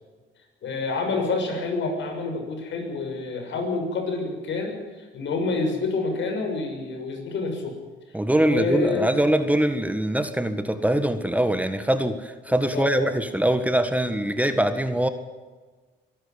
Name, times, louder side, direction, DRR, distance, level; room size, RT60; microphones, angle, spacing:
voice 1, 0.6-7.7 8.3-9.1 12.7-13.0, left 3 dB, 70° left, 3 dB, 6.7 m, -28 dB
voice 2, 8.1-15.1, right 1 dB, 5° right, 9 dB, 1.6 m, -23 dB
23.5 x 12.5 x 9.7 m, 1.4 s
cardioid pair, 90°, 20 cm